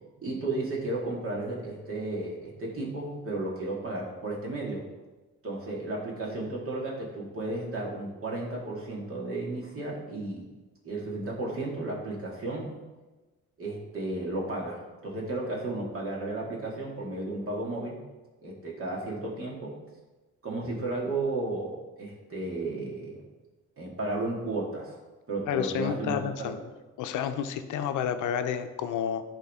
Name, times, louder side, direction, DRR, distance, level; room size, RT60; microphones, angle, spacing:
voice 1, 0.2-4.8 5.4-10.5 10.8-12.8 13.6-18.0 18.4-19.7 20.4-23.2 23.8-24.9 25.3-26.6, right 2 dB, 45° right, -3 dB, 2.3 m, -33 dB
voice 2, 25.5-26.6 27.0-29.2, left 8 dB, 80° left, 9 dB, 0.6 m, -30 dB
11.0 x 3.8 x 3.7 m, 1.2 s
cardioid pair, 90°, 30 cm